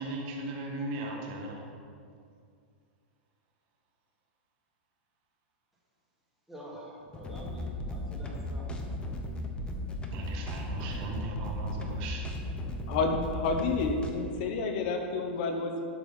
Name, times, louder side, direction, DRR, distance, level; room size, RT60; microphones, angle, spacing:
voice 1, 0.0-1.6 10.1-12.2, right 2 dB, 45° right, 0 dB, 1.6 m, -37 dB
voice 2, 6.5-8.7 15.4-15.6, equal, ahead, -7 dB, 2.4 m, -47 dB
sound 1, 7.1-14.1, left 1 dB, 15° left, 0.9 m, -36 dB
voice 3, 12.9-15.8, left 3 dB, 50° left, 4 dB, 1.0 m, -30 dB
11.5 x 5.0 x 5.7 m, 2.3 s
hypercardioid pair, 145°, 6 cm